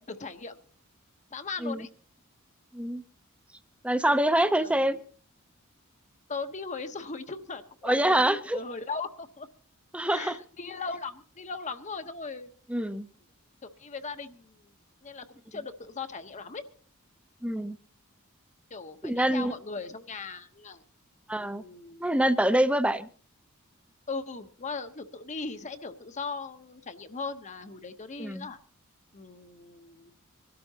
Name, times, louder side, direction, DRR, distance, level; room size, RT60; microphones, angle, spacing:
voice 1, 0.1-0.6 1.3-1.9 4.4-5.0 6.3-9.5 10.1-12.5 13.6-14.7 15.0-16.6 18.7-20.8 21.4-22.2 24.1-28.6 29.1-30.1, left 4 dB, 35° left, 8 dB, 0.9 m, -38 dB
voice 2, 3.8-5.0 7.8-8.6 9.9-10.4 12.7-13.0 17.4-17.8 19.0-19.5 21.3-21.6 22.0-23.1 28.2-28.5, right 1 dB, 5° right, 12 dB, 0.7 m, -25 dB
24.5 x 12.5 x 2.8 m, 0.42 s
head